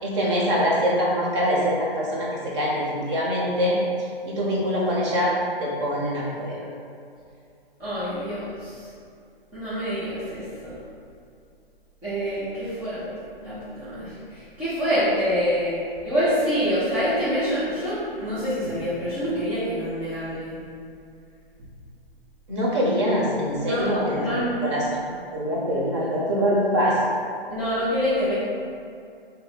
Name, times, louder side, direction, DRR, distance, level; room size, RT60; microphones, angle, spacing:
voice 1, 0.0-3.8 4.3-5.3 5.6-6.6 22.5-24.3 24.6-27.0, equal, 30° right, -4 dB, 1.0 m, -24 dB
voice 2, 7.8-8.9 9.5-10.7 12.0-13.1 13.4-15.8 16.0-20.6 23.6-24.6 27.5-28.3, equal, 5° right, -15 dB, 0.4 m, -26 dB
4.0 x 2.9 x 4.0 m, 2.4 s
figure-of-eight pair, 140°, 30 cm